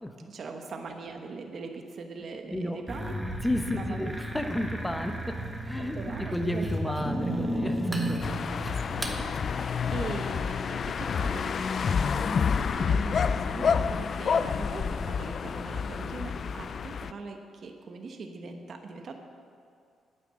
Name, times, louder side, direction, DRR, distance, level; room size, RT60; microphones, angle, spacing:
voice 1, 0.3-3.1 3.7-4.1 5.8-6.7 8.6-11.8 12.1-19.2, right 4 dB, 50° right, 4 dB, 1.1 m, -41 dB
voice 2, 2.4-2.8 3.4-5.4 5.6-8.6, left 1 dB, 5° left, 6 dB, 1.0 m, -33 dB
sound 1, 2.9-9.2, equal, 10° right, 1.5 m, -33 dB
sound 2, 8.2-17.1, left 6 dB, 50° left, 0.4 m, -29 dB
9.5 x 9.2 x 7.6 m, 2.4 s
cardioid pair, 105°, 0 cm